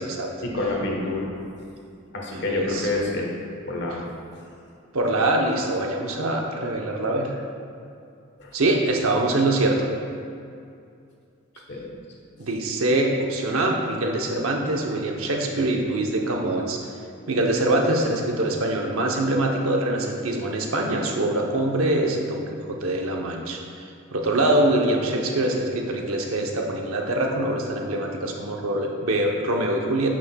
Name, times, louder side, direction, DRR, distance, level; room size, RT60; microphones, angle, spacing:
voice 1, 0.4-1.3 2.1-3.3 3.7-4.0 8.4-8.5 11.5-11.9 15.6-15.7, left 2 dB, 55° left, -1 dB, 1.1 m, -28 dB
voice 2, 2.3-3.0 4.9-7.3 8.5-9.9 12.4-16.8 17.3-22.4 22.8-30.1, right 1 dB, 80° right, 1 dB, 0.8 m, -24 dB
9.5 x 6.2 x 2.2 m, 2.5 s
head